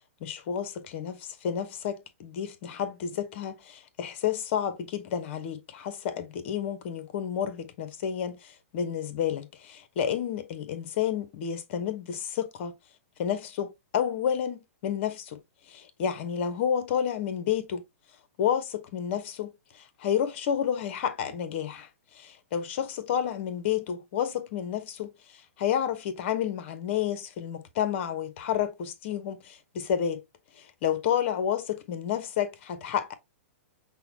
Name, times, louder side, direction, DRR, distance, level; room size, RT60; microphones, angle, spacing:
voice 1, 0.2-12.7 13.2-15.4 15.7-17.8 18.4-21.9 22.1-25.1 25.6-30.2 30.6-33.1, left 9 dB, 50° left, 0.9 m, -30 dB
5.6 x 2.2 x 2.8 m
hypercardioid pair, 125°, 8 cm